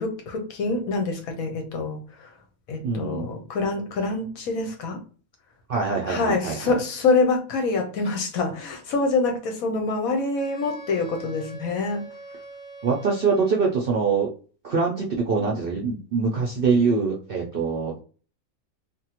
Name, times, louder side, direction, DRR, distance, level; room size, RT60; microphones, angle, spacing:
voice 1, 0.0-2.3 2.7-5.0 6.1-12.1, left 3 dB, 75° left, 1.2 m, -26 dB
voice 2, 2.8-3.3 5.7-6.8 12.8-14.3 14.6-18.0, right 5 dB, 65° right, 0.5 m, -24 dB
Wind instrument woodwind instrument, 10.4-13.9, right 3 dB, 55° left, 1.7 m, -43 dB
3.5 x 2.1 x 2.9 m
omnidirectional pair, 1.5 m